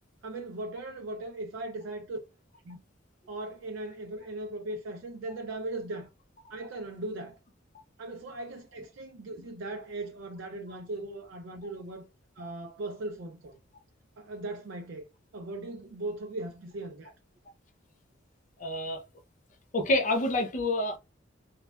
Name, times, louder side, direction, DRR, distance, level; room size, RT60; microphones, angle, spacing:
voice 1, 0.2-2.2 2.6-2.8 3.3-6.1 6.5-7.4 8.0-12.0 12.4-13.6 14.2-15.1 15.3-17.2, right 2 dB, 75° right, 0.4 m, -38 dB
voice 2, 18.6-19.0 19.7-21.0, left 1 dB, 40° left, 0.6 m, -27 dB
3.1 x 2.2 x 2.2 m
head